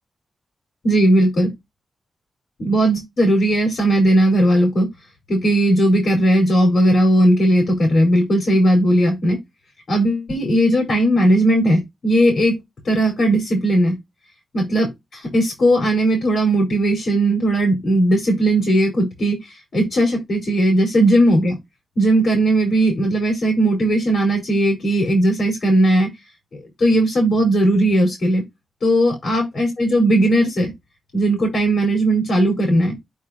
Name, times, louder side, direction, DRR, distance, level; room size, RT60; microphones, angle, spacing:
voice 1, 0.8-1.5 2.6-4.9 5.3-9.4 9.9-12.6 12.8-13.9 14.5-21.6 22.0-26.1 26.5-28.4 28.8-30.7 31.1-33.0, right 1 dB, 65° left, 4.9 m, -17 dB
8.9 x 4.5 x 2.9 m
cardioid pair, 55°, 0 cm